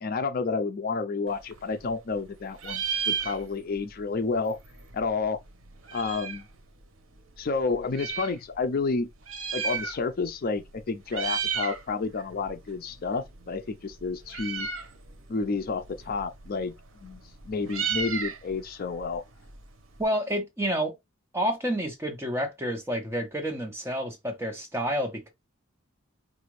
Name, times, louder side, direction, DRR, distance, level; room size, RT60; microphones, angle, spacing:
voice 1, 0.0-4.6 4.9-5.4 5.9-6.4 7.4-9.1 9.5-14.7 15.3-16.7 17.0-19.2, left 4 dB, 45° left, 0.4 m, -30 dB
Meow, 1.3-2.3 2.5-3.8 4.1-4.2 4.4-6.5 7.2-8.4 9.1-10.3 10.6-10.8 11.1-11.8 12.2-20.0, right 6 dB, 75° right, 0.8 m, -34 dB
voice 2, 20.0-20.9 21.3-25.3, equal, 10° right, 1.0 m, -29 dB
4.9 x 2.5 x 3.1 m
head